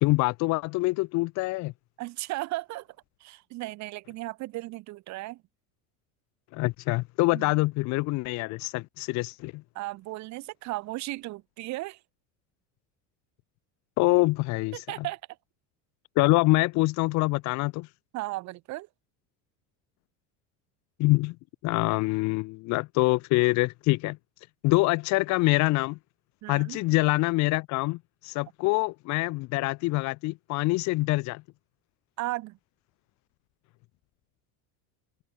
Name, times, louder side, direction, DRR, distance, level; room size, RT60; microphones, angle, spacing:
voice 1, 0.0-1.7 6.5-9.6 14.0-14.8 16.1-17.9 21.0-21.3 21.6-24.2 24.6-26.0 26.5-31.4, left 22 dB, 50° left, 1.5 m, -25 dB
voice 2, 2.0-2.9 3.2-5.4 7.3-7.5 9.7-12.0 14.7-15.2 18.1-18.9 26.4-26.8 32.2-32.6, right 19 dB, 50° right, 7.5 m, -35 dB
cardioid pair, 170°, 35 cm